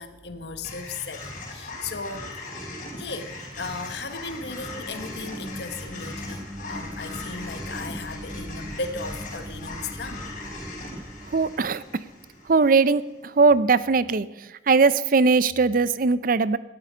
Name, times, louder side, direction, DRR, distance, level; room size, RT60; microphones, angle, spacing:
voice 1, 0.0-2.3 3.0-10.3, left 3 dB, 70° left, 9 dB, 1.2 m, -36 dB
sound 1, 0.6-13.0, left 2 dB, 45° left, 3.8 m, -39 dB
sound 2, 3.3-12.4, equal, 15° right, 1.0 m, -41 dB
voice 2, 11.3-11.8 12.5-13.0 13.4-14.3 14.7-16.6, right 4 dB, 50° right, 17 dB, 0.5 m, -19 dB
18.5 x 12.0 x 5.1 m, 1.1 s
head